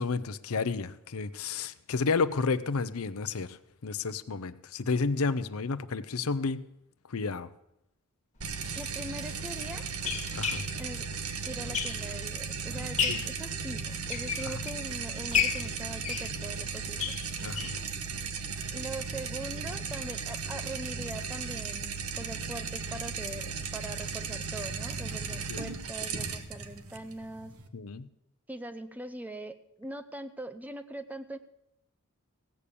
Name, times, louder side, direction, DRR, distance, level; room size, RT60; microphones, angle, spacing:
voice 1, 0.0-6.6 7.1-7.5 8.6-8.8 10.3-10.6 13.1-13.2 14.4-14.6 17.4-17.8 25.3-25.6 27.7-28.1, left 4 dB, 70° left, 13 dB, 0.6 m, -31 dB
sound 1, 8.4-27.7, right 5 dB, 75° right, 1.1 m, -36 dB
sound 2, 8.5-8.6 9.3-12.3 12.7-13.4 13.9-14.9 15.3-17.8 18.2-18.3 18.6-18.7 19.0-19.1, left 7 dB, 35° left, 1.6 m, -32 dB
voice 2, 8.7-9.8 10.8-11.1 11.4-17.1 18.7-27.5 28.5-31.4, right 1 dB, 5° right, 11 dB, 0.6 m, -42 dB
16.5 x 8.5 x 6.9 m, 0.82 s
head